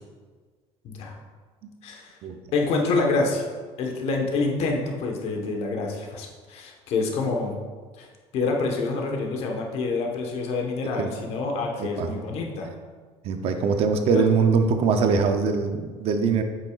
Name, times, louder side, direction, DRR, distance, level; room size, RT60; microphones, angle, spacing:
voice 1, 1.8-2.2 2.5-3.5 3.8-7.5 8.0-8.1 8.3-12.7 14.1-14.2, left 3 dB, 55° left, 1 dB, 1.2 m, -27 dB
voice 2, 11.8-12.2 13.2-16.4, right 5 dB, 55° right, 6 dB, 0.6 m, -22 dB
8.3 x 6.3 x 2.4 m, 1.5 s
cardioid pair, 140°, 12 cm